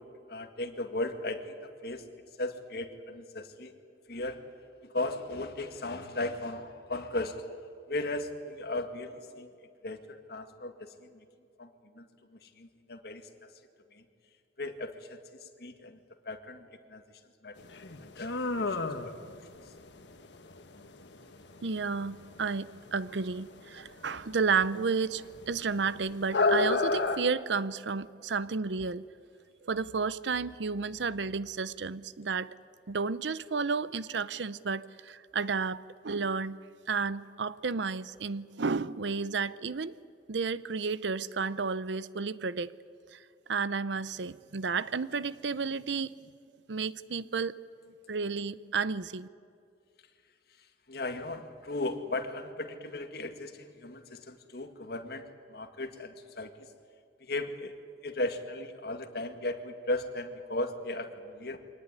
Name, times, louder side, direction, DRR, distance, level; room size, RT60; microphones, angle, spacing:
voice 1, 0.0-2.1 2.4-3.8 4.1-4.5 4.8-7.5 7.9-9.5 9.8-11.3 11.6-13.6 13.9-14.0 14.6-16.0 16.2-17.0 17.4-19.4 19.6-19.7 50.6-56.7 57.2-57.7 58.0-61.6, left 2 dB, 55° left, 7 dB, 2.0 m, -37 dB
sound 1, 17.6-27.2, left 3 dB, 75° left, 1.6 m, -32 dB
voice 2, 21.6-29.0 29.6-32.5 32.9-36.6 36.9-39.9 40.3-42.7 43.1-43.2 43.5-46.1 46.7-47.5 48.1-49.3, right 5 dB, 75° right, 17 dB, 0.7 m, -32 dB
24.5 x 19.0 x 9.9 m, 2.3 s
head